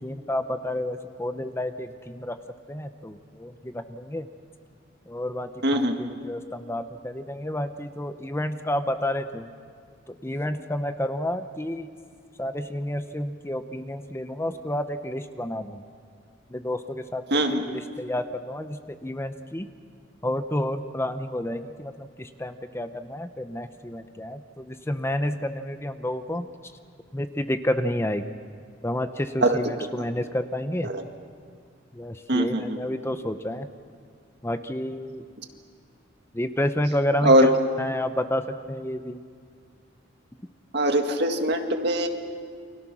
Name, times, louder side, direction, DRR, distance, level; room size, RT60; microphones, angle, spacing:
voice 1, 0.0-2.4 2.7-4.3 5.1-9.5 10.1-11.9 12.4-15.8 16.5-19.7 20.2-26.5 27.1-28.3 28.8-30.9 31.9-33.7 34.4-35.2 36.3-37.5 37.8-39.2, left 1 dB, 15° left, 9 dB, 0.7 m, -30 dB
voice 2, 5.6-6.0 17.3-17.6 29.4-29.6 30.8-31.0 32.3-32.8 37.3-37.5 40.7-42.1, right 1 dB, 55° right, 5 dB, 2.0 m, -21 dB
29.5 x 24.5 x 6.2 m, 2.2 s
head